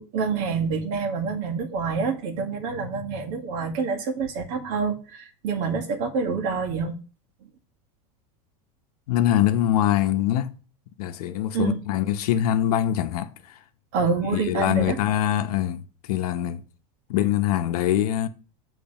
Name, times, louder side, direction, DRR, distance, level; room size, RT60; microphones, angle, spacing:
voice 1, 0.0-7.0 11.5-11.8 13.9-15.0, right 5 dB, 55° right, 1.5 m, -27 dB
voice 2, 9.1-10.5 11.0-13.6 14.3-16.6 17.1-18.3, left 12 dB, 75° left, 0.8 m, -23 dB
6.9 x 3.3 x 5.4 m
supercardioid pair, 130°, 20 cm